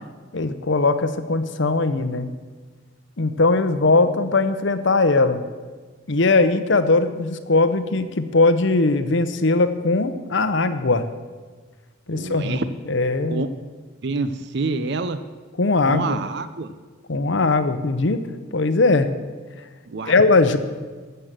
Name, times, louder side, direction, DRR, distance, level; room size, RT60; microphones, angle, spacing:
voice 1, 0.3-2.3 3.2-5.4 6.1-11.1 12.1-12.6 12.9-13.4 15.6-16.2 17.1-18.2 18.5-19.1 20.1-20.6, left 3 dB, 60° left, 10 dB, 0.8 m, -19 dB
voice 2, 12.1-12.7 13.3-13.5 14.0-15.2 15.9-16.7 19.9-20.1, right 3 dB, 55° right, 11 dB, 0.5 m, -27 dB
14.0 x 6.7 x 7.5 m, 1.4 s
head